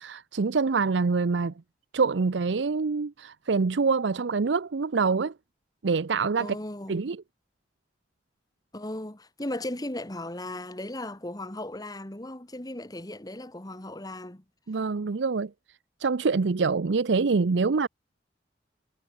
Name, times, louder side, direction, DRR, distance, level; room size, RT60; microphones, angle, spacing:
voice 1, 0.0-1.5 1.9-5.3 5.8-6.5 6.9-7.2 14.7-15.5 16.0-17.9, right 4 dB, 85° right, 0.6 m, -25 dB
voice 2, 6.4-7.0 8.7-14.4, left 1 dB, 20° left, 1.8 m, -36 dB
head